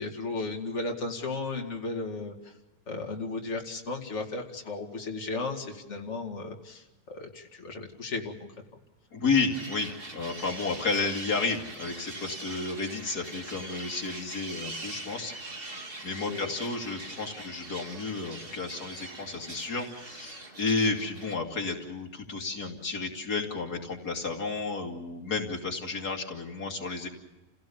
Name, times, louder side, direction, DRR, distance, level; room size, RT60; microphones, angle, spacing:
voice 1, 0.0-2.5 2.9-8.5 16.3-16.5, left 3 dB, 50° left, 1 dB, 2.6 m, -35 dB
voice 2, 9.1-27.1, left 4 dB, 90° left, 1 dB, 3.0 m, -32 dB
sound 1, 9.5-21.3, right 2 dB, 35° right, 2.3 m, -42 dB
29.5 x 17.0 x 7.1 m, 1.1 s
omnidirectional pair, 1.6 m